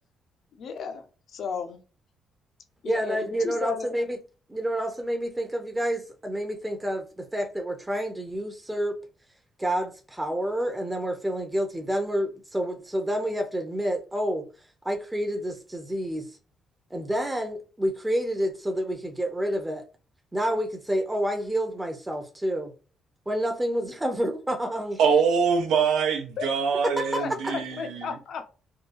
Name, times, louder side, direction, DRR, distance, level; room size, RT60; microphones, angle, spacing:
voice 1, 0.5-1.8 2.8-3.9 26.4-26.5 27.2-27.3 27.7-28.4, left 6 dB, 65° left, 0.7 m, -34 dB
voice 2, 2.8-4.2 4.5-9.0 9.6-14.4 14.8-16.3 16.9-19.8 20.3-22.7 23.3-25.0 27.0-27.5, equal, 15° right, 0.6 m, -29 dB
voice 3, 25.0-28.1, right 6 dB, 90° right, 0.7 m, -24 dB
3.6 x 2.2 x 2.6 m
cardioid pair, 80°, 0 cm